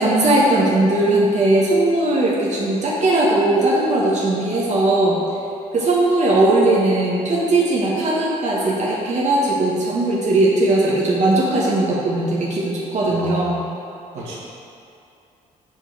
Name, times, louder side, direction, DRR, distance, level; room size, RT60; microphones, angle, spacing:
voice 1, 0.0-5.2 5.7-13.6, right 2 dB, 40° right, -5 dB, 1.2 m, -18 dB
voice 2, 13.0-13.5 14.1-14.4, right 1 dB, 60° right, -5 dB, 1.5 m, -33 dB
7.3 x 4.4 x 4.5 m, 2.6 s
figure-of-eight pair, 45°, 19 cm